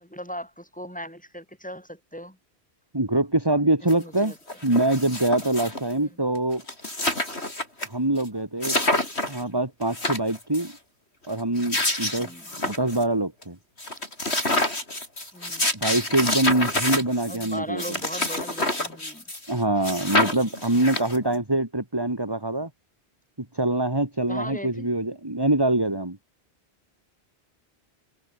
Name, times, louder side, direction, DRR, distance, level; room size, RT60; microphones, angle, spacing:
voice 1, 0.0-2.4 3.8-4.4 5.9-6.2 12.2-12.5 15.3-15.7 17.3-19.3 24.3-24.9, equal, 5° left, 7.4 m, -38 dB
voice 2, 2.9-4.3 4.6-6.6 7.8-8.8 9.3-10.7 11.3-12.3 12.6-13.6 15.7-18.0 19.5-22.7 23.4-26.2, right 2 dB, 20° right, 2.8 m, -24 dB
sound 1, 3.9-4.0 4.2-5.9 6.3-6.4 6.6-7.9 8.2-8.3 8.6-9.4 9.8-10.7 11.4-13.0 13.4-13.5 13.8-19.5 19.8-21.3, left 1 dB, 80° left, 7.0 m, -27 dB
omnidirectional pair, 1.1 m